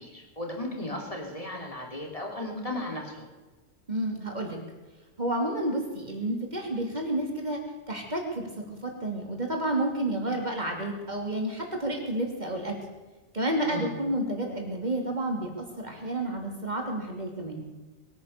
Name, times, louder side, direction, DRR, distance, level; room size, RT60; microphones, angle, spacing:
voice 1, 0.0-3.2 13.6-13.9, left 1 dB, 25° left, 0 dB, 3.2 m, -35 dB
voice 2, 3.9-4.6 5.2-7.6 7.9-12.8 13.3-17.6, right 1 dB, 35° right, 1 dB, 3.1 m, -30 dB
21.5 x 9.6 x 6.9 m, 1.3 s
omnidirectional pair, 1.4 m